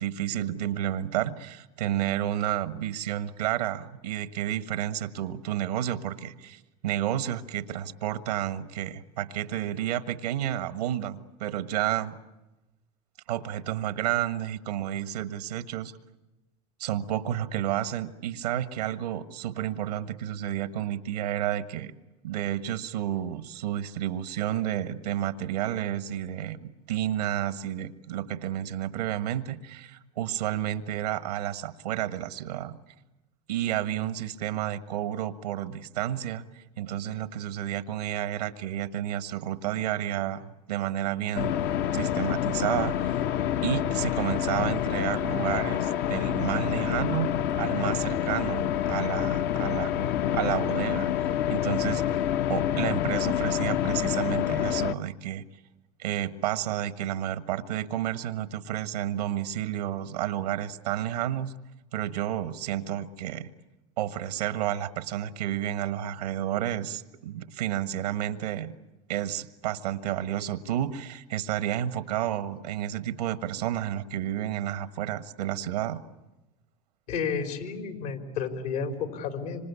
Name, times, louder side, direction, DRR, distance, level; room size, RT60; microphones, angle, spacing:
voice 1, 0.0-12.2 13.3-15.9 16.8-21.9 22.2-32.8 33.5-41.5 41.9-43.1 43.6-47.3 47.6-50.1 50.3-51.1 51.5-52.1 52.5-55.4 56.0-61.5 61.9-63.5 64.0-68.7 69.1-76.0, right 11 dB, 90° right, 11 dB, 1.5 m, -31 dB
sound 1, 41.3-54.9, left 10 dB, 55° left, 0.9 m, -27 dB
voice 2, 77.1-79.7, left 6 dB, 75° left, 4 dB, 4.1 m, -31 dB
26.0 x 26.0 x 8.4 m, 1.0 s
hypercardioid pair, 100°, 20 cm